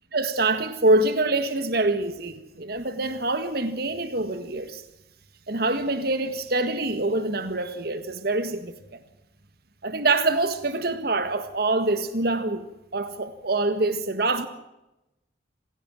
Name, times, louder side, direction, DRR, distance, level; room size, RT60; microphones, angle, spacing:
voice 1, 0.1-4.8 5.5-9.0 9.8-12.6 12.9-14.5, right 2 dB, 55° right, 1.7 m, -25 dB
26.5 x 17.0 x 7.6 m
head